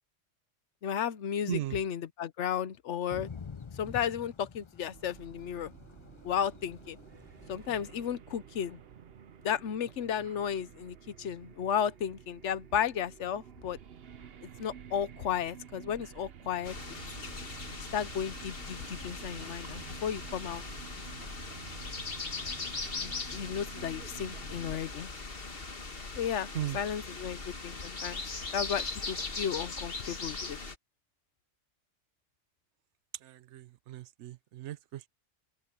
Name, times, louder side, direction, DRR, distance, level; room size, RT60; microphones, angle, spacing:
voice 1, 0.8-3.3 3.7-5.7 6.2-7.0 7.5-8.8 9.4-13.8 14.6-16.9 17.9-20.6 23.0-25.1 26.2-26.5 26.7-28.2 28.5-30.6, left 8 dB, 85° left, 1.1 m, -34 dB
voice 2, 1.5-1.8 26.5-26.8 33.2-35.1, right 12 dB, 85° right, 0.9 m, -37 dB
Thunder / Rain, 3.1-8.0, left 6 dB, 35° left, 0.5 m, -48 dB
sound 1, 4.9-24.8, right 8 dB, 60° right, 1.0 m, -50 dB
sound 2, 16.6-30.7, left 3 dB, 55° left, 2.0 m, -40 dB
open air
omnidirectional pair, 1.2 m